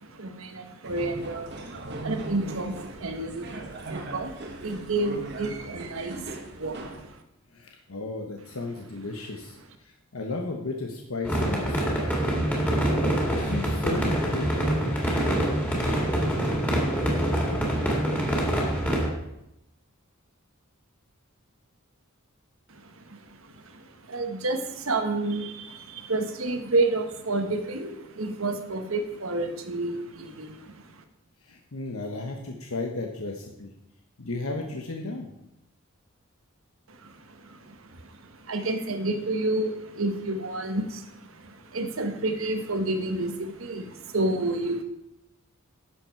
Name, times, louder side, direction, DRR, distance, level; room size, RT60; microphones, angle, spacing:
voice 1, 0.0-7.2 22.7-31.0 36.9-44.8, right 2 dB, 75° right, 6 dB, 1.3 m, -30 dB
sound 1, 0.8-7.1, right 2 dB, 55° right, 1.3 m, -39 dB
voice 2, 7.5-12.0 12.9-15.0 31.4-33.7 34.2-35.3, left 3 dB, 90° left, 1 dB, 1.1 m, -34 dB
sound 2, 11.2-19.1, right 1 dB, 10° left, 2.4 m, -25 dB
11.5 x 7.4 x 4.6 m, 0.85 s
head